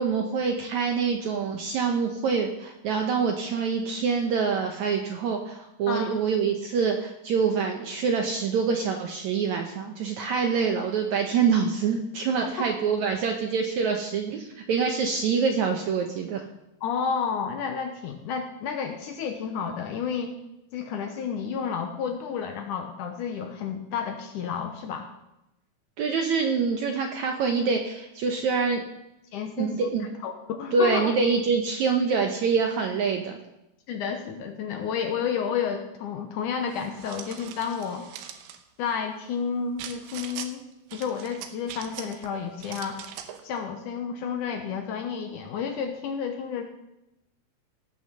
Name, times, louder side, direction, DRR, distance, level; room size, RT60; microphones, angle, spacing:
voice 1, 0.0-16.5 26.0-28.8 29.6-30.1 30.7-33.4, right 5 dB, 70° right, 3 dB, 1.8 m, -25 dB
voice 2, 5.9-6.2 16.8-20.3 20.7-25.1 29.3-29.9 30.2-31.1 33.9-38.1 38.8-40.7 40.9-43.1 43.4-46.6, left 6 dB, 70° left, 5 dB, 2.1 m, -31 dB
sound 1, 36.7-38.6 39.8-40.5 40.9-42.3 42.6-43.4, right 9 dB, 85° right, 2.9 m, -41 dB
17.5 x 6.3 x 6.7 m, 0.89 s
omnidirectional pair, 4.4 m